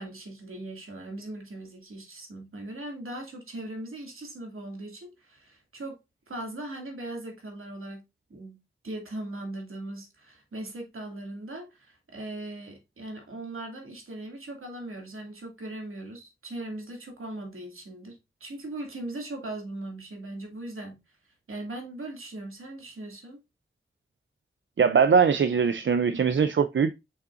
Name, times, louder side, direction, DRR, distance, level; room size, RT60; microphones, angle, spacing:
voice 1, 0.0-6.0 6.3-8.0 8.3-8.6 8.8-21.2 21.5-23.4, right 1 dB, 80° right, 2.3 m, -39 dB
voice 2, 24.8-27.0, right 6 dB, 65° right, 0.5 m, -21 dB
6.5 x 5.7 x 2.5 m
wide cardioid pair, 70°, 21 cm